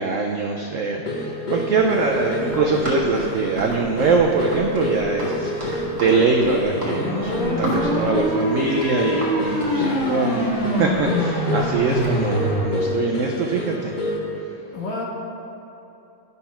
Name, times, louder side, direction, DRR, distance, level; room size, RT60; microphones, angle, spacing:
voice 1, 0.0-10.5 10.7-14.0, right 4 dB, 75° right, 1 dB, 0.7 m, -23 dB
sound 1, 1.0-14.4, left 1 dB, 65° left, 0.4 m, -29 dB
Run, 1.7-12.2, right 1 dB, 20° right, 1.5 m, -34 dB
sound 2, 6.7-12.6, left 1 dB, 50° left, 1.9 m, -24 dB
voice 2, 7.4-8.2 9.7-10.1 14.7-15.1, left 1 dB, 80° left, -2 dB, 1.7 m, -30 dB
11.0 x 4.1 x 5.6 m, 2.9 s
omnidirectional pair, 2.0 m